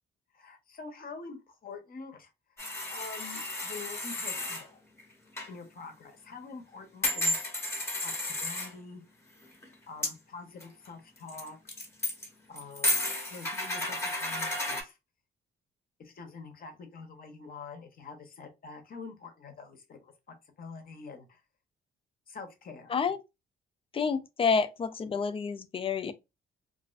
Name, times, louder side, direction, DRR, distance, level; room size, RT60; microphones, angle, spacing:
voice 1, 0.3-2.3 2.9-4.8 5.5-7.5 8.0-9.0 9.9-11.6 12.5-15.0 16.0-20.1 20.6-21.4 22.3-23.0, left 4 dB, 45° left, 0.7 m, -46 dB
sound 1, 2.6-4.7 5.0-5.1 5.4-5.5 7.0-8.7 9.4-9.7 10.0-10.1 10.6-10.9 11.3-12.3 12.6-14.8, left 1 dB, 15° left, 0.8 m, -32 dB
voice 2, 23.9-26.1, left 5 dB, 30° left, 0.3 m, -29 dB
2.4 x 2.1 x 2.4 m
cardioid pair, 90°, 20 cm